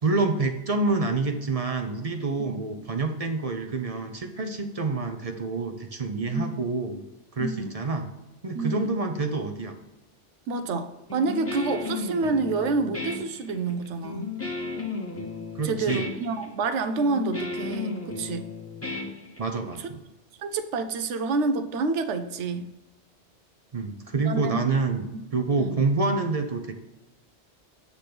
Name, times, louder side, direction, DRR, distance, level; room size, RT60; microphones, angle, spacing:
voice 1, 0.0-7.0 7.3-8.1 8.4-9.8 15.5-16.0 19.4-20.0 23.7-26.7, right 3 dB, 40° right, 5 dB, 0.6 m, -27 dB
voice 2, 7.4-7.7 8.5-8.9 10.5-14.3 15.6-18.5 20.4-22.7 24.3-24.6 25.6-25.8, right 3 dB, 80° right, 9 dB, 1.0 m, -28 dB
Guitar, 11.1-19.7, left 4 dB, 15° left, 0.9 m, -34 dB
8.3 x 3.5 x 5.9 m, 1.0 s
omnidirectional pair, 1.2 m